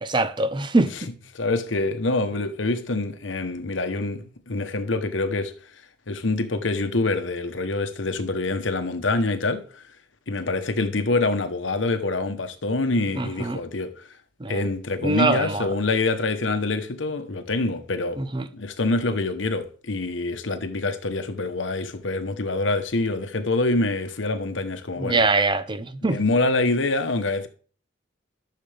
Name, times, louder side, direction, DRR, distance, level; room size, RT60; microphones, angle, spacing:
voice 1, 0.0-0.9 13.2-13.6 14.4-14.6 15.0-15.7 18.2-18.5 25.0-26.2, right 3 dB, 25° right, 0.7 m, -23 dB
voice 2, 1.3-5.8 6.1-9.8 10.3-14.1 14.5-18.2 18.5-25.2 26.0-27.5, left 2 dB, 75° left, 1.0 m, -26 dB
14.0 x 6.7 x 3.4 m
head